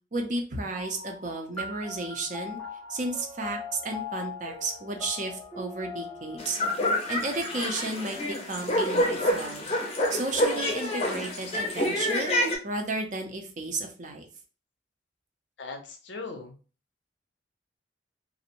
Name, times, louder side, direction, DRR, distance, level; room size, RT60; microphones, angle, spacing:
voice 1, 0.1-2.6 2.9-6.6 7.1-9.7 10.1-12.3 12.6-14.3, right 2 dB, 45° right, 2 dB, 0.5 m, -33 dB
sound 1, 0.7-9.6, left 4 dB, 5° left, 0.8 m, -42 dB
sound 2, 6.4-12.6, left 1 dB, 35° left, 0.5 m, -27 dB
voice 2, 15.6-16.6, left 3 dB, 75° left, 4 dB, 0.6 m, -39 dB
2.5 x 2.0 x 2.9 m, 0.36 s
head